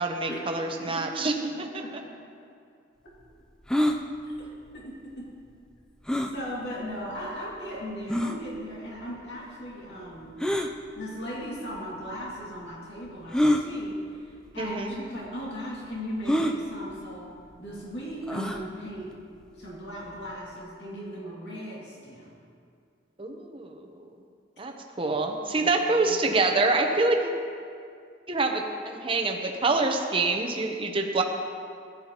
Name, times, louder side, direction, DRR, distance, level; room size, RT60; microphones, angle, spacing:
voice 1, 0.0-1.8 14.6-14.9 23.2-23.9 24.6-24.7 25.0-27.3 28.3-31.2, right 3 dB, 30° right, 3 dB, 0.9 m, -26 dB
voice 2, 0.8-2.2 3.0-3.1 4.7-5.3 6.3-10.4 11.0-17.3 17.6-19.2 19.5-22.4 25.5-25.8, equal, 70° left, -5 dB, 2.4 m, -38 dB
sound 1, 3.7-4.0 6.1-6.4 7.1-7.2 8.1-8.4 10.4-10.7 11.8-11.9 13.3-13.6 14.6-14.7 15.0-15.1 16.3-16.6 18.3-18.6, equal, 5° left, 0.4 m, -25 dB
14.5 x 11.0 x 3.0 m, 2.3 s
head